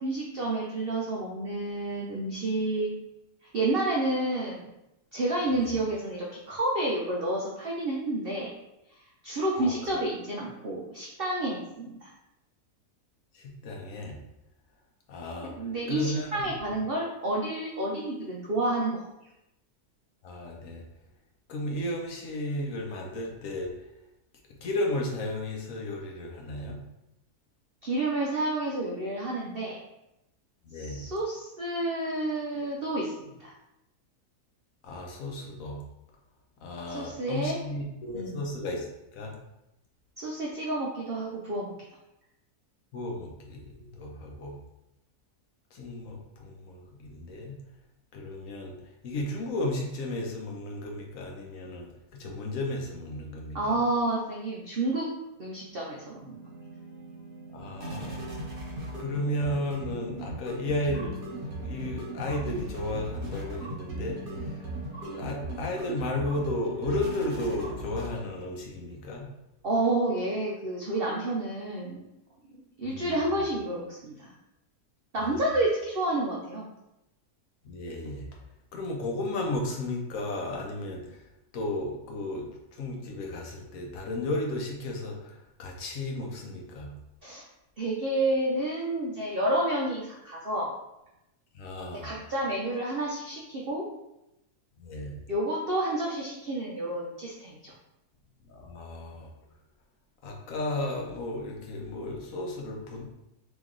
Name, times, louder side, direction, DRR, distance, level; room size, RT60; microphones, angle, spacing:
voice 1, 0.0-2.9 3.5-4.7 5.1-8.5 9.2-12.1 15.4-19.0 27.8-29.8 30.8-33.5 36.9-37.6 38.1-38.4 40.2-41.7 53.5-55.1 55.4-56.4 69.6-72.0 72.8-74.3 75.1-76.7 87.2-87.4 87.8-90.7 92.0-93.8 95.3-97.7, right 1 dB, 60° right, -3 dB, 0.6 m, -30 dB
voice 2, 13.3-14.2 15.1-15.5 15.9-16.5 20.2-20.8 21.5-23.7 24.6-26.8 30.6-31.0 34.8-35.8 36.6-39.4 42.9-44.6 45.7-47.6 48.1-48.7 49.0-53.8 57.5-58.3 59.0-61.2 61.6-64.7 65.1-69.3 72.8-73.4 75.2-75.4 77.6-78.3 78.7-81.2 81.5-86.9 91.5-92.1 94.8-95.2 98.4-99.3 100.2-103.1, left 1 dB, 60° left, 0 dB, 1.1 m, -34 dB
sound 1, 55.7-68.5, right 1 dB, 35° right, 1.2 m, -38 dB
3.4 x 3.0 x 3.7 m, 0.89 s
omnidirectional pair, 1.7 m